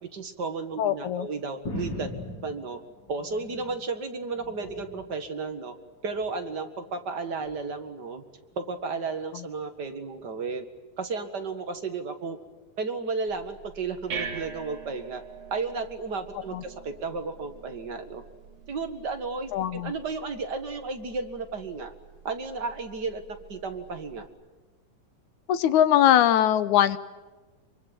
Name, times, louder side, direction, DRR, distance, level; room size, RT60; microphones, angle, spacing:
voice 1, 0.0-2.1 2.4-2.8 3.1-5.7 6.0-8.2 8.6-10.7 11.0-12.4 12.8-15.2 15.5-18.2 18.7-21.9 22.2-23.2 23.5-24.3, right 4 dB, 40° right, 6 dB, 1.9 m, -33 dB
voice 2, 0.8-1.3 9.3-9.5 16.5-16.6 19.5-19.9 25.5-27.0, left 11 dB, 75° left, 13 dB, 2.3 m, -21 dB
sound 1, 1.6-3.9 4.2-5.2 6.0-6.4 7.4-7.6, left 2 dB, 35° left, 4.0 m, -39 dB
sound 2, 13.3-24.3, right 6 dB, 65° right, 4.5 m, -44 dB
24.5 x 24.0 x 9.3 m, 1.2 s
omnidirectional pair, 3.6 m